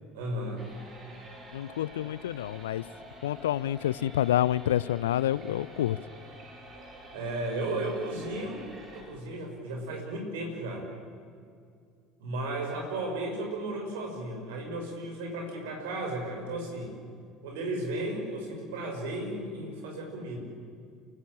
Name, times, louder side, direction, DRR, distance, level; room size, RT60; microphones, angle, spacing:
voice 1, 0.1-0.6 7.1-8.6 8.9-10.9 12.2-16.9 17.4-20.4, right 2 dB, 65° right, 2 dB, 5.8 m, -34 dB
sound 1, 0.6-9.0, right 1 dB, 40° right, 6.8 m, -48 dB
voice 2, 1.5-2.8 3.2-6.0, left 12 dB, 70° left, 21 dB, 0.5 m, -28 dB
29.5 x 16.0 x 8.8 m, 2.3 s
figure-of-eight pair, 65°, 0 cm